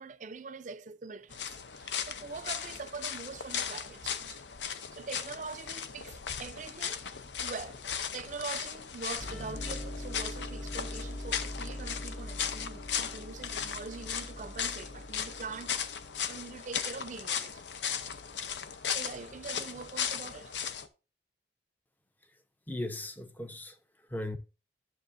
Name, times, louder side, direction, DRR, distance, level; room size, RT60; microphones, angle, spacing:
voice 1, 0.0-4.4 4.9-7.0 7.4-7.8 8.1-15.8 16.3-17.5 18.9-20.5, right 4 dB, 45° right, 0.5 m, -43 dB
sound 1, 1.3-20.9, left 7 dB, 80° left, 0.7 m, -37 dB
sound 2, 9.2-16.8, left 1 dB, 40° left, 1.0 m, -43 dB
voice 2, 22.7-24.4, left 1 dB, 10° left, 0.6 m, -38 dB
10.5 x 7.0 x 2.6 m
head